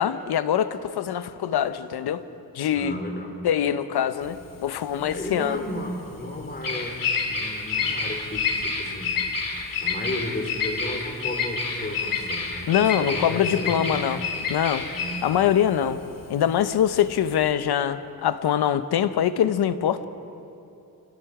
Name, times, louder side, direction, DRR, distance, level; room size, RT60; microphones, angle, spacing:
voice 1, 0.0-2.2 2.5-2.9 3.4-5.6 12.7-14.2 14.5-14.8 15.2-16.0 16.3-20.0, left 9 dB, 75° left, 12 dB, 1.0 m, -23 dB
voice 2, 2.7-3.4 5.0-7.0 7.3-9.2 9.8-14.1 14.9-15.3, left 1 dB, 25° left, 1 dB, 3.8 m, -34 dB
Bird vocalization bird call bird song, 4.2-17.5, left 5 dB, 55° left, 2.7 m, -29 dB
28.0 x 19.0 x 4.9 m, 2.8 s
cardioid pair, 105°, 39 cm